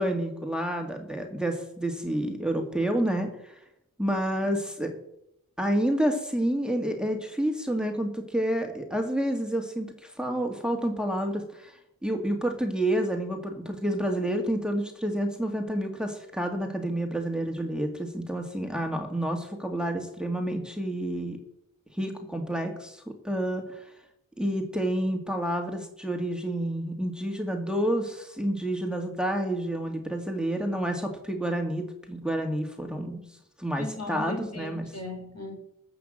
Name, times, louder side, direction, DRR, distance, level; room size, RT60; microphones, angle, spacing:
voice 1, 0.0-3.6 4.0-4.9 5.6-21.4 21.9-23.9 24.4-33.2 33.6-34.8, right 1 dB, ahead, 3 dB, 2.2 m, -29 dB
voice 2, 33.7-35.5, left 3 dB, 50° left, 3 dB, 3.8 m, -37 dB
14.5 x 6.1 x 7.6 m, 0.79 s
wide cardioid pair, 45°, 33 cm